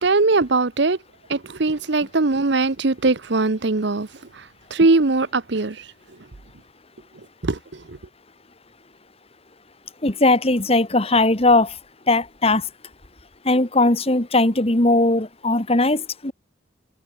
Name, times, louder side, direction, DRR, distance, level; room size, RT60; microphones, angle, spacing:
voice 1, 0.0-1.0 1.3-4.1 4.3-5.9 7.4-8.0, right 3 dB, 60° right, 0.9 m, -21 dB
voice 2, 10.0-11.8 12.1-12.7 13.4-16.3, left 2 dB, 30° left, 2.0 m, -19 dB
head